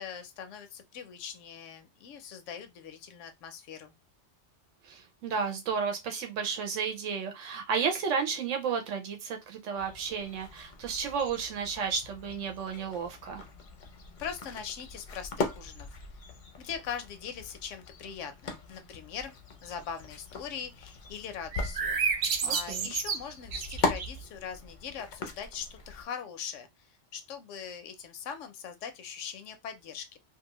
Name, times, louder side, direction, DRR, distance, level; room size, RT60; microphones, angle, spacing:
voice 1, 0.0-3.9 14.2-15.9 16.6-19.4 19.6-22.0 22.4-30.2, left 7 dB, 80° left, 0.9 m, -41 dB
voice 2, 4.8-13.4 22.4-22.9, right 6 dB, 90° right, 1.0 m, -32 dB
sound 1, 9.8-26.1, left 3 dB, 50° left, 0.6 m, -40 dB
sound 2, 21.5-24.2, right 5 dB, 55° right, 0.6 m, -31 dB
2.6 x 2.4 x 2.9 m
omnidirectional pair, 1.2 m